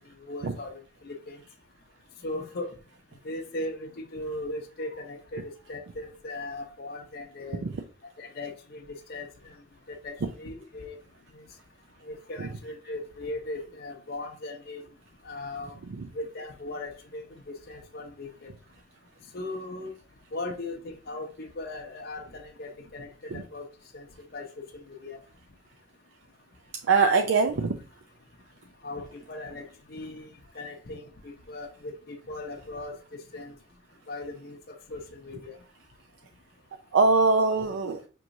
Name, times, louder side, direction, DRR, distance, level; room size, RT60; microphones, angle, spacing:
voice 1, 0.2-1.4 2.2-2.7 3.2-5.4 5.7-7.6 8.2-8.8 9.1-9.3 9.9-11.0 11.3-11.4 12.0-14.8 15.2-15.7 16.1-18.5 19.3-19.9 20.3-23.7 23.9-24.1 24.3-24.5 25.0-25.2 28.8-30.3 30.5-33.0 33.3-33.5 34.1-35.5, left 2 dB, 55° left, 0.6 m, -38 dB
voice 2, 26.8-27.8 36.9-38.0, right 4 dB, 75° right, 0.4 m, -22 dB
5.9 x 3.0 x 2.6 m
head